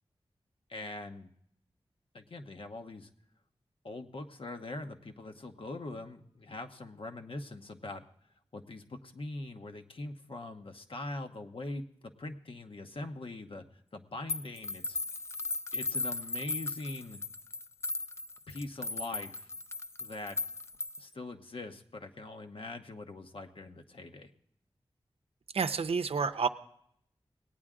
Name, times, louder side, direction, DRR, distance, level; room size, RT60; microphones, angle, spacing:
voice 1, 0.7-1.3 2.1-3.1 3.8-8.0 8.5-13.6 13.9-15.0 15.7-17.2 18.5-19.5 20.0-20.4 21.0-24.3, left 2 dB, 65° left, 6 dB, 1.0 m, -42 dB
sound 1, 14.3-21.1, left 3 dB, 25° left, 0.5 m, -37 dB
voice 2, 25.5-26.5, right 5 dB, 75° right, 9 dB, 0.6 m, -29 dB
19.0 x 8.9 x 3.7 m, 0.71 s
cardioid pair, 50°, 10 cm